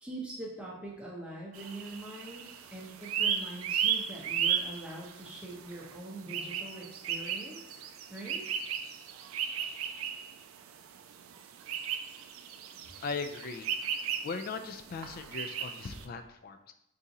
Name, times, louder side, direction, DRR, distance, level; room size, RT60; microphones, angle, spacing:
voice 1, 0.0-7.8 8.1-8.4, right 1 dB, 5° right, -3 dB, 0.7 m, -43 dB
sound 1, 1.5-16.0, right 8 dB, 80° right, 0.3 m, -35 dB
voice 2, 13.0-13.7 14.2-16.7, left 4 dB, 45° left, 7 dB, 0.3 m, -38 dB
3.6 x 2.7 x 4.0 m, 0.80 s
head